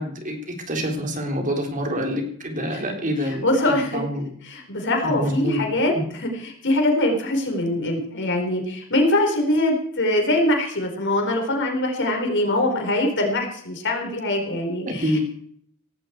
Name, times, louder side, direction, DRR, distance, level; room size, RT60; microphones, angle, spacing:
voice 1, 0.0-4.3 5.0-5.6 14.8-15.2, equal, 40° right, 3 dB, 3.7 m, -27 dB
voice 2, 3.4-4.0 4.5-5.9 6.2-15.2, left 1 dB, 60° left, 2 dB, 4.7 m, -23 dB
17.5 x 16.5 x 4.7 m, 0.64 s
head